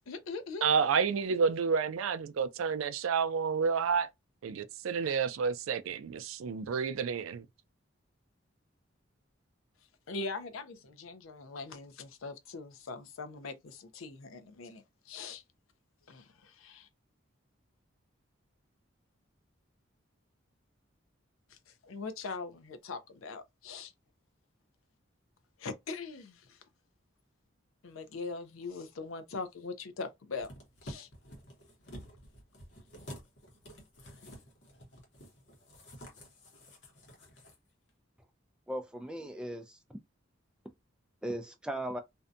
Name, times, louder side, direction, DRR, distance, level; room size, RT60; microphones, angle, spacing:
voice 1, 0.1-0.6 10.1-15.4 16.1-16.9 21.5-23.9 25.6-26.6 27.8-30.5 30.8-31.1 34.0-34.3, left 4 dB, 85° left, 0.5 m, -42 dB
voice 2, 0.6-4.1 4.4-7.4, right 6 dB, 85° right, 0.4 m, -30 dB
sound 1, 30.4-37.5 37.9-38.0, equal, 60° left, 0.9 m, -50 dB
voice 3, 38.7-40.0 41.2-42.0, right 1 dB, 5° right, 0.3 m, -38 dB
2.6 x 2.2 x 2.5 m
head